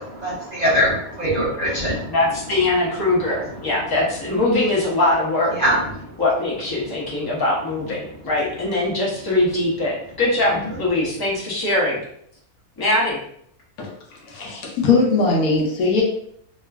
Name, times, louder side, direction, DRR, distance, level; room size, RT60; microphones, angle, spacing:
voice 1, 0.0-2.1 5.5-6.1, equal, 40° right, -9 dB, 0.6 m, -22 dB
voice 2, 2.1-5.5 6.2-12.0 12.8-13.2, left 2 dB, 20° left, -5 dB, 0.6 m, -21 dB
voice 3, 14.2-16.0, left 3 dB, 80° left, -1 dB, 1.2 m, -19 dB
2.9 x 2.4 x 2.3 m, 0.68 s
omnidirectional pair, 1.6 m